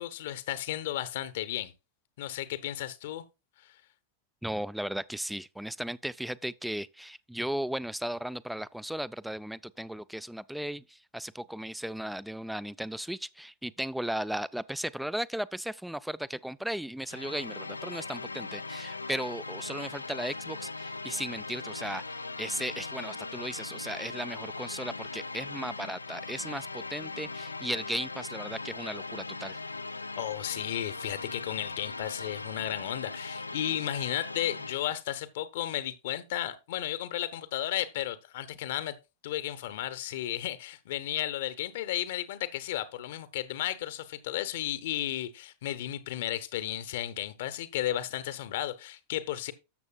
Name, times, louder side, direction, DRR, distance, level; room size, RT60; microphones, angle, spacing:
voice 1, 0.0-1.7 2.2-3.2 30.2-39.0 39.2-49.5, left 13 dB, 55° left, 0.8 m, -34 dB
voice 2, 4.4-29.6, right 1 dB, ahead, 0.3 m, -36 dB
sound 1, 17.1-35.0, left 3 dB, 80° left, 0.3 m, -39 dB
13.0 x 6.9 x 2.3 m
figure-of-eight pair, 90°, 0 cm